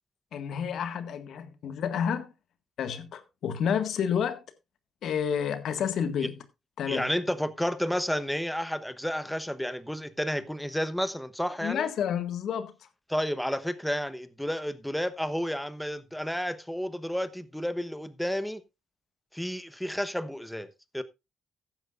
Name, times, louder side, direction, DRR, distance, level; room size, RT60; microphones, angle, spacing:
voice 1, 0.3-2.3 2.8-4.4 5.0-6.4 6.8-7.1 11.6-12.7, left 8 dB, 70° left, 1.6 m, -30 dB
voice 2, 6.9-11.9 13.1-18.6 19.3-21.0, equal, 5° left, 1.0 m, -31 dB
14.5 x 10.5 x 2.5 m
cardioid pair, 90°, 0 cm